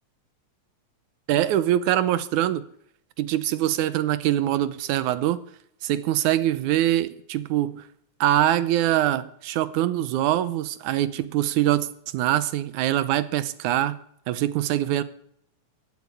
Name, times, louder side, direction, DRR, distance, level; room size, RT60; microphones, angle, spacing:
voice 1, 1.3-2.6 3.2-5.4 5.8-7.8 8.2-11.9 12.1-14.0 14.3-15.0, right 13 dB, 80° right, 2.3 m, -23 dB
15.5 x 9.0 x 9.7 m
omnidirectional pair, 3.4 m